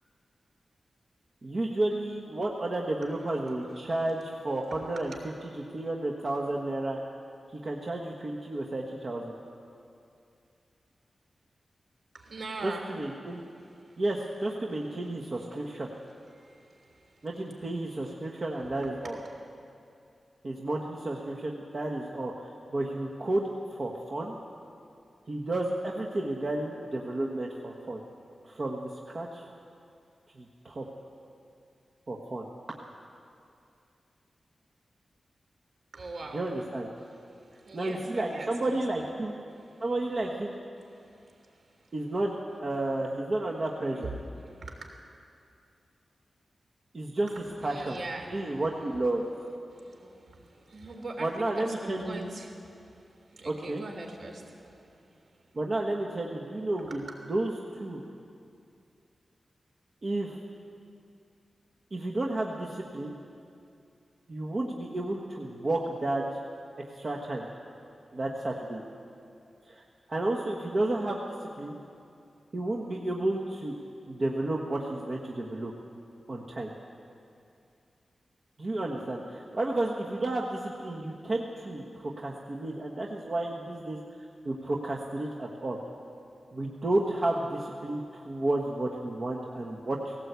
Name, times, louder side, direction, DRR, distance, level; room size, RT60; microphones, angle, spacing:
voice 1, 1.4-5.1 5.7-7.0 7.5-9.3 12.6-13.4 14.0-15.9 17.2-19.2 20.4-24.4 25.3-28.0 28.4-29.4 30.3-30.8 32.1-32.5 36.3-36.9 37.7-39.4 39.8-40.5 41.9-44.1 46.9-47.3 47.6-48.0 48.3-49.2 51.2-52.3 53.4-53.8 55.5-57.0 57.3-58.0 60.0-60.4 61.9-63.2 64.3-66.2 66.8-67.5 68.1-68.8 69.6-69.8 70.1-71.2 71.6-71.8 72.5-73.7 74.1-75.7 76.3-76.7 78.6-85.8 86.5-90.2, right 2 dB, 40° right, -1 dB, 1.4 m, -32 dB
voice 2, 12.1-12.9 13.3-13.4 16.3-17.3 19.0-19.4 35.9-36.4 37.1-39.1 39.6-39.7 41.3-41.4 43.5-44.9 47.3-49.0 49.7-53.0 53.3-54.9 56.5-57.1, right 2 dB, 70° right, 2 dB, 3.2 m, -43 dB
18.0 x 17.5 x 8.2 m, 2.5 s
wide cardioid pair, 135°, 0 cm